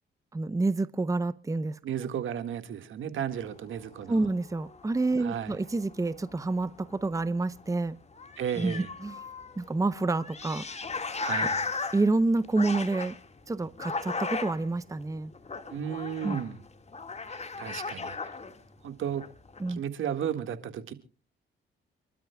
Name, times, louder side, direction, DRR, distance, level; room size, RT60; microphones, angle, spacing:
voice 1, 0.3-2.1 4.1-8.0 8.6-9.2 9.6-10.6 11.9-13.1 13.5-15.3 16.2-16.4 19.6-19.8, right 3 dB, 15° right, 0.8 m, -28 dB
voice 2, 1.8-4.3 5.2-5.6 8.4-8.9 11.2-11.7 15.7-16.6 17.3-18.1 18.8-19.2 19.7-20.9, right 9 dB, 75° right, 2.0 m, -34 dB
sound 1, 3.3-7.6 7.9-8.0 8.1-18.9 19.1-19.7, left 4 dB, 30° left, 2.0 m, -37 dB
29.0 x 12.5 x 2.4 m
cardioid pair, 75°, 21 cm